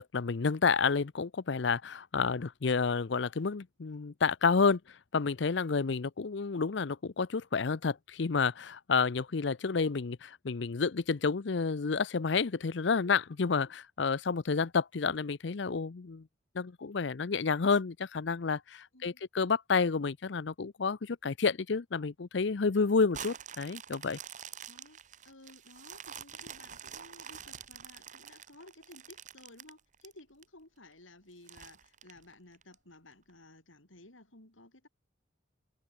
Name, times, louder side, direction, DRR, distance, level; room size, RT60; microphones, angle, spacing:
voice 1, 0.0-4.8 5.1-16.2 16.5-24.2, left 5 dB, 65° left, 0.6 m, -30 dB
sound 1, 23.1-30.4 30.9-31.0 31.5-32.7 33.3-33.4, right 8 dB, 40° right, 0.9 m, -47 dB
voice 2, 24.7-25.0 25.2-34.9, left 2 dB, 85° left, 7.3 m, -55 dB
head